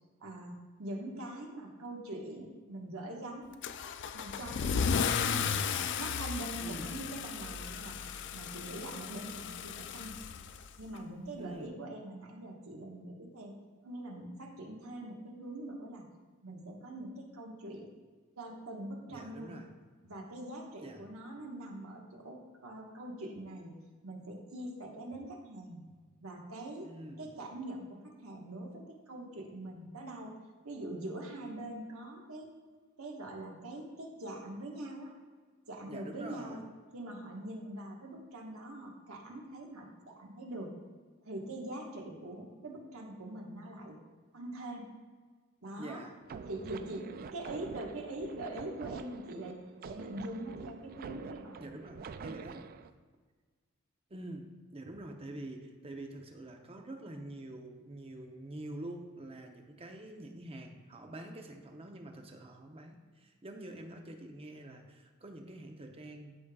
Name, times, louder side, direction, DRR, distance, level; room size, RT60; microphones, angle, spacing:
voice 1, 0.2-3.5 4.1-5.5 6.0-10.1 10.8-13.5 13.8-16.1 16.4-17.9 18.4-19.5 20.0-23.7 24.0-25.8 26.2-26.8 27.2-30.3 30.6-32.5 33.0-35.1 35.7-36.6 36.9-40.7 41.2-44.0 44.3-44.9 45.6-46.0 46.5-49.6 49.8-51.7, right 1 dB, 75° right, 0 dB, 1.3 m, -43 dB
Car / Engine starting / Accelerating revving vroom, 3.6-11.0, left 6 dB, 55° left, 0.4 m, -35 dB
voice 2, 6.6-7.0 11.4-11.8 19.1-19.7 20.8-21.0 26.8-27.3 35.8-36.6 45.8-46.2 51.6-52.7 54.1-66.4, right 1 dB, 25° right, 4 dB, 0.7 m, -46 dB
sound 1, 46.2-52.9, right 5 dB, 45° right, 0.3 m, -46 dB
14.0 x 5.0 x 2.3 m, 1.5 s
head